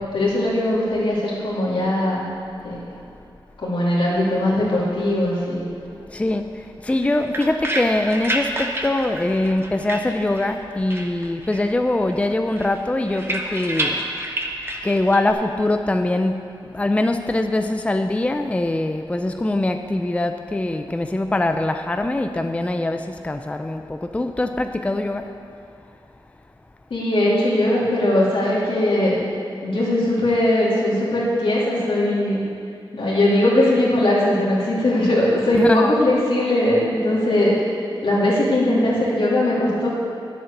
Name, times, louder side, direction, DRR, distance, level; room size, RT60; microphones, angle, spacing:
voice 1, 0.1-2.2 2.6-2.8 3.6-5.6 26.9-29.2 29.6-32.4 32.9-37.5 38.0-39.9, left 1 dB, 80° left, -6 dB, 2.9 m, -20 dB
voice 2, 6.1-14.0 14.8-25.3 35.5-36.0, left 2 dB, 15° left, 6 dB, 0.4 m, -23 dB
sound 1, 6.9-10.6 10.9-11.8 12.1-15.3, right 1 dB, 25° right, 1.0 m, -29 dB
10.5 x 7.8 x 6.6 m, 2.5 s
wide cardioid pair, 115°, 9 cm